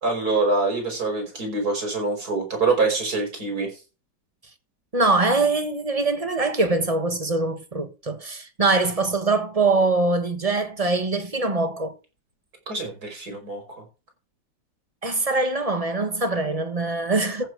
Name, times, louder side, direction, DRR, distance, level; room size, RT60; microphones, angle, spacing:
voice 1, 0.0-3.7 12.7-13.8, right 3 dB, 55° right, 5.6 m, -25 dB
voice 2, 4.9-11.9 15.0-17.4, right 3 dB, 20° right, 1.3 m, -23 dB
14.5 x 6.5 x 4.7 m
omnidirectional pair, 1.9 m